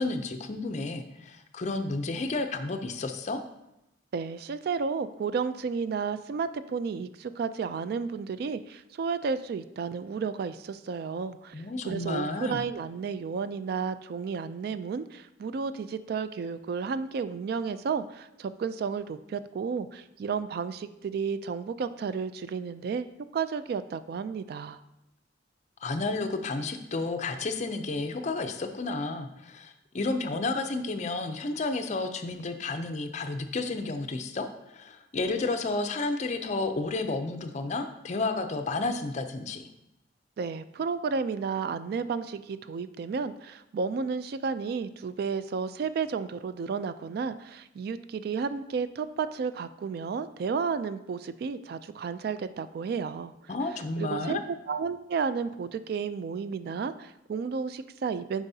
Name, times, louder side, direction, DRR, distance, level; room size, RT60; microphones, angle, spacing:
voice 1, 0.0-3.4 11.5-12.6 25.8-39.7 53.5-54.4, left 3 dB, 40° left, 7 dB, 0.5 m, -31 dB
voice 2, 4.1-11.5 11.9-23.1 23.3-24.8 40.4-53.3 54.0-58.4, right 5 dB, 60° right, 13 dB, 0.3 m, -32 dB
9.0 x 4.9 x 2.7 m, 0.87 s
head